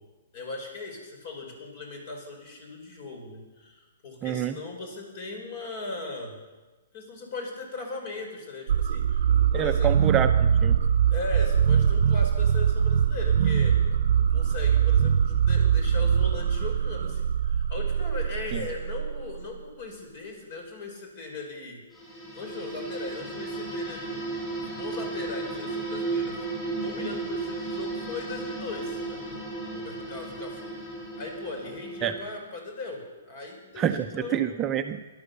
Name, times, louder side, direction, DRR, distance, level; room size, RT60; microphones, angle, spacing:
voice 1, 0.3-6.3 6.9-9.9 11.1-13.8 14.2-21.8 22.3-34.5, left 3 dB, 45° left, 3 dB, 4.9 m, -39 dB
voice 2, 4.2-4.6 9.5-10.8 18.5-18.7 32.0-32.1 33.8-35.0, right 9 dB, 20° right, 5 dB, 0.7 m, -27 dB
sound 1, 8.7-19.6, right 8 dB, 65° right, 0.9 m, -23 dB
sound 2, 21.9-32.3, right 3 dB, 15° left, 7.0 m, -34 dB
17.0 x 12.0 x 6.8 m, 1.2 s
hypercardioid pair, 150°, 0 cm